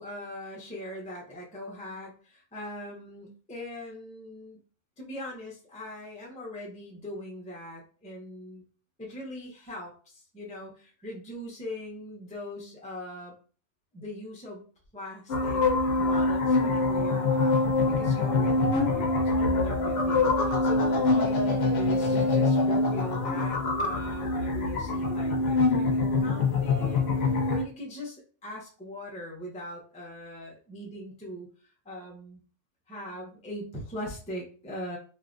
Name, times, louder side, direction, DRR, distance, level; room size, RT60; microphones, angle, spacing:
voice 1, 0.0-4.6 5.0-8.6 9.0-13.3 13.9-14.6 14.9-15.6 16.0-32.4 32.9-35.0, left 1 dB, 10° left, -2 dB, 0.4 m, -41 dB
sound 1, 15.3-27.6, left 3 dB, 60° left, 0.7 m, -25 dB
3.3 x 2.5 x 2.5 m, 0.40 s
omnidirectional pair, 1.5 m